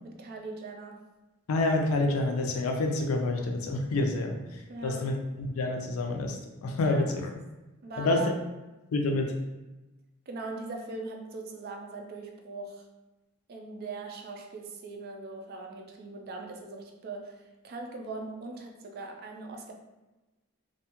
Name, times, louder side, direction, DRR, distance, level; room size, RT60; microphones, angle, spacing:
voice 1, 0.0-1.1 4.7-5.1 6.8-7.1 7.8-8.3 10.3-12.8 13.5-19.7, right 3 dB, 45° right, 3 dB, 0.4 m, -40 dB
voice 2, 1.5-4.4 4.8-7.3 8.0-8.2 8.9-9.3, left 2 dB, 85° left, 3 dB, 0.4 m, -28 dB
2.5 x 2.2 x 2.8 m, 1.1 s
head